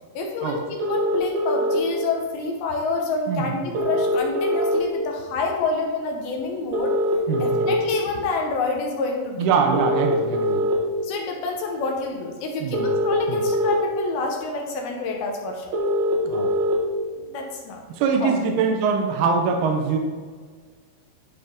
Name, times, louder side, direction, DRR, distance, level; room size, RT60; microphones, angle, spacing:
voice 1, 0.1-7.0 7.4-9.5 11.0-15.7 17.2-17.8 18.2-18.3, left 3 dB, 75° left, 1 dB, 2.5 m, -28 dB
sound 1, 0.8-1.8 3.7-4.8 6.7-7.7 9.7-10.7 12.7-13.7 15.7-16.7, equal, 65° right, 1.9 m, -22 dB
voice 2, 3.3-3.7 7.3-7.7 9.4-10.6 12.6-12.9 13.3-13.4 16.2-16.5 17.9-20.0, right 5 dB, 80° right, 3 dB, 2.6 m, -23 dB
11.5 x 4.1 x 3.6 m, 1.6 s
omnidirectional pair, 4.7 m